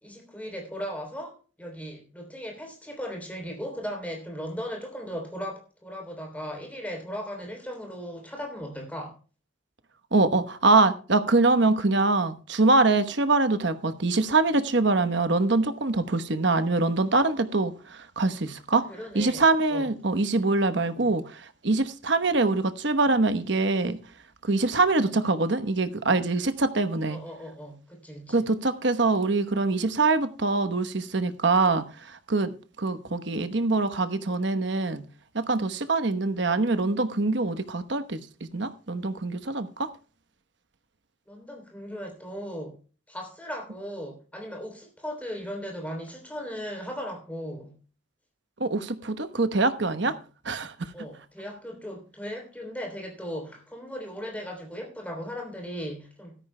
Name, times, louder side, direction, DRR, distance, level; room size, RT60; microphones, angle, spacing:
voice 1, 0.0-9.2 18.9-19.4 19.7-19.9 20.8-21.2 27.1-28.4 41.3-42.8 43.1-47.8 50.0-50.1 50.9-56.4, equal, 5° left, 3.3 m, -37 dB
voice 2, 10.1-18.9 19.1-24.0 24.4-27.2 28.3-35.0 35.3-38.2 38.5-39.9 48.6-50.1 50.4-50.9, right 3 dB, 60° right, 1.0 m, -24 dB
16.0 x 13.5 x 2.2 m
head